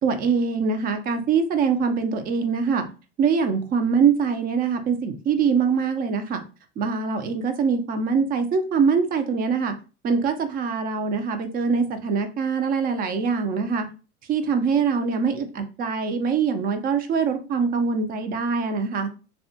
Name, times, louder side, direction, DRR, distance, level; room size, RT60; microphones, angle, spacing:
voice 1, 0.0-2.8 3.2-6.4 6.8-9.7 10.0-13.9 14.3-19.1, right 5 dB, 25° right, 0.4 m, -23 dB
2.6 x 2.2 x 2.6 m
supercardioid pair, 115°, 35 cm